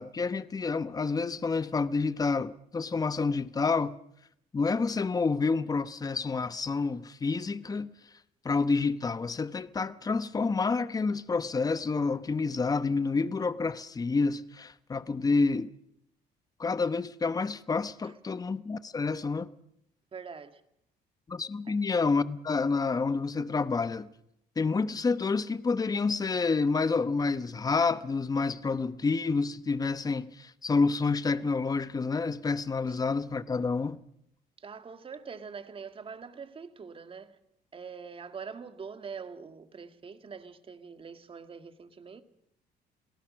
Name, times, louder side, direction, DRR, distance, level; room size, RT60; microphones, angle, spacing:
voice 1, 0.0-4.0 4.5-7.9 8.4-15.7 16.6-19.5 21.3-24.1 24.6-34.0, left 4 dB, 20° left, 0.9 m, -28 dB
voice 2, 20.1-20.6 21.7-21.8 32.9-33.0 34.6-37.4 37.7-42.2, right 6 dB, 30° right, 1.9 m, -44 dB
28.0 x 18.0 x 6.3 m
cardioid pair, 110°, 17 cm